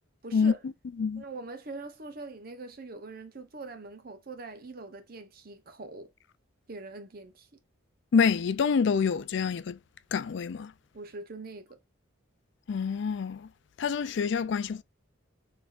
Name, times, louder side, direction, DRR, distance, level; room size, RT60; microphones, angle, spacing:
voice 1, 0.2-0.6 1.2-6.1 6.7-7.5 10.9-11.8, right 3 dB, 50° right, 0.9 m, -43 dB
voice 2, 8.1-9.8 10.1-10.7 12.7-13.5 13.8-14.8, left 6 dB, 60° left, 0.4 m, -26 dB
4.3 x 3.5 x 2.5 m
head